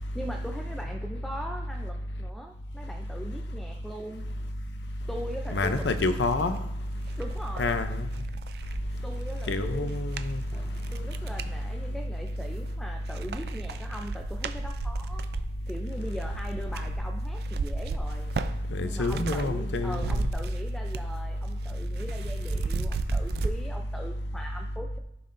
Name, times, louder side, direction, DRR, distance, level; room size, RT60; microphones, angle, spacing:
voice 1, 0.1-4.2 5.1-6.0 7.2-7.8 9.0-10.0 10.9-15.3 15.7-18.3 18.8-25.0, equal, ahead, 0.5 m, -40 dB
sound 1, 4.9-5.0 5.4-11.6 12.1-12.7 13.0-19.5 19.8-21.2 21.4-23.5, right 3 dB, 65° right, 0.4 m, -35 dB
voice 2, 5.5-6.6 7.6-8.1 9.5-10.4 18.7-20.3, left 2 dB, 85° left, 0.6 m, -27 dB
Drum, 10.5-12.4, equal, 20° left, 1.0 m, -55 dB
14.0 x 5.7 x 2.6 m
head